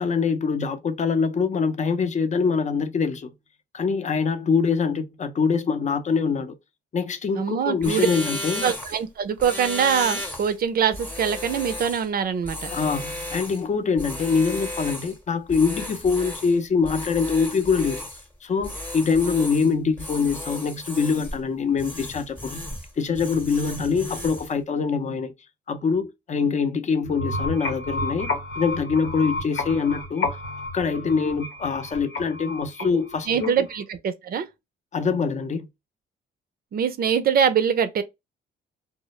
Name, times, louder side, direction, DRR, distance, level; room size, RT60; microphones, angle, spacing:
voice 1, 0.0-3.3 3.7-6.5 6.9-8.6 12.7-18.1 18.4-22.6 23.0-25.3 25.7-28.3 28.6-30.3 30.7-33.5 34.9-35.7, left 5 dB, 35° left, 0.6 m, -24 dB
voice 2, 7.4-8.1 8.6-12.7 33.3-34.5 36.7-38.0, right 7 dB, 50° right, 0.5 m, -23 dB
sound 1, 7.8-9.0 9.4-10.5 10.9-12.1 12.4-13.6 14.0-15.2 15.5-16.6 16.8-18.2 18.6-19.7 20.0-21.4 21.8-22.9 23.2-24.5, left 1 dB, 10° left, 0.8 m, -34 dB
sound 2, 27.0-33.8, left 2 dB, 75° left, 0.9 m, -31 dB
2.0 x 2.0 x 3.0 m
cardioid pair, 90°, 20 cm